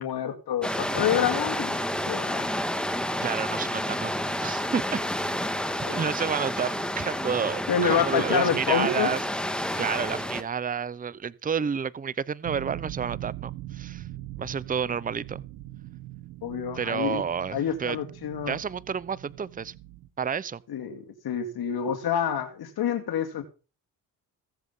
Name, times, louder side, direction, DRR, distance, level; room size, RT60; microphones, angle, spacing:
voice 1, 0.0-1.8 2.1-2.5 5.8-6.0 7.7-9.1 16.4-17.2 17.5-18.6 20.7-23.4, left 8 dB, 60° left, 2.2 m, -27 dB
sound 1, 0.6-10.4, left 1 dB, ahead, 1.7 m, -30 dB
voice 2, 3.2-4.1 4.4-5.0 5.9-9.2 9.5-14.1 14.4-15.4 16.7-18.0 18.5-19.7 20.2-20.6, right 6 dB, 20° right, 0.7 m, -30 dB
sound 2, 12.4-20.1, right 15 dB, 90° right, 1.3 m, -41 dB
16.5 x 8.0 x 5.5 m
supercardioid pair, 70°, 42 cm